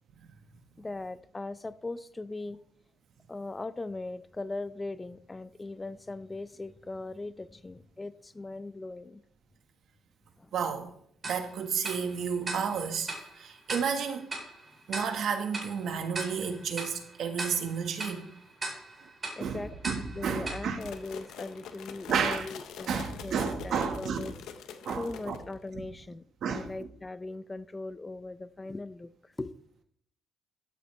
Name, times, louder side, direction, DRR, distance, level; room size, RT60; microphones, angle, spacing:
voice 1, 0.8-2.6 3.3-9.2 10.4-10.5 19.4-19.7 20.1-24.3 24.9-29.5, left 2 dB, 20° left, 15 dB, 0.5 m, -39 dB
voice 2, 10.5-10.9 11.2-14.3 14.9-18.2 19.0-19.1 19.4-20.8 22.1-22.5 22.9-24.3 24.8-25.4 25.7-25.8 26.4-26.9, right 6 dB, 70° right, 6 dB, 1.5 m, -32 dB
Tick-tock, 11.2-21.7, right 2 dB, 30° right, 4.2 m, -41 dB
sound 1, 20.8-25.7, left 7 dB, 85° left, 1.0 m, -45 dB
13.0 x 8.2 x 3.3 m, 0.65 s
cardioid pair, 90°, 0 cm